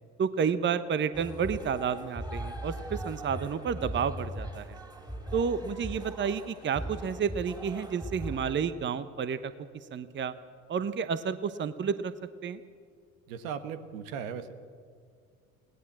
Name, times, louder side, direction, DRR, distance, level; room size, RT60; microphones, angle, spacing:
voice 1, 0.2-4.8 5.3-9.5 9.9-10.3 10.7-12.1 12.4-12.6, right 6 dB, 25° right, 13 dB, 1.0 m, -30 dB
sound 1, 1.1-8.5, right 1 dB, 10° right, 3.0 m, -39 dB
voice 2, 13.3-14.5, right 7 dB, 70° right, 10 dB, 1.6 m, -37 dB
21.5 x 17.5 x 7.5 m, 2.1 s
hypercardioid pair, 70°, 42 cm